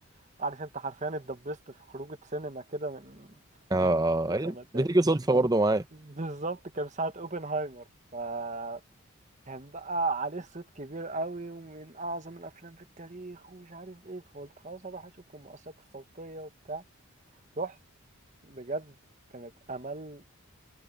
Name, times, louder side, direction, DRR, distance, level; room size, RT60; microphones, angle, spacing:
voice 1, 0.4-3.4 3.8-3.9 4.3-4.9 5.9-7.8 8.1-8.8 9.5-16.8 17.6-17.8 18.4-19.0 19.3-20.2, right 2 dB, 35° right, 1.3 m, -37 dB
voice 2, 3.7-5.8, right 2 dB, 15° right, 0.8 m, -24 dB
head